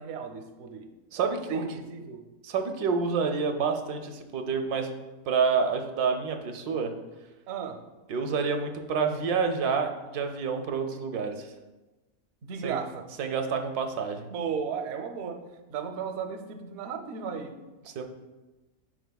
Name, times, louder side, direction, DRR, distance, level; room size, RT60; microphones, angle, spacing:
voice 1, 0.0-0.9 1.5-2.2 7.5-7.8 12.4-13.1 14.3-17.5, right 6 dB, 65° right, 6 dB, 0.7 m, -35 dB
voice 2, 1.1-1.8 2.4-4.9 5.3-6.9 8.1-11.5 12.6-12.8 13.2-14.3 18.0-18.1, right 5 dB, 85° right, 5 dB, 1.2 m, -28 dB
9.0 x 4.9 x 2.2 m, 1.1 s
omnidirectional pair, 1.6 m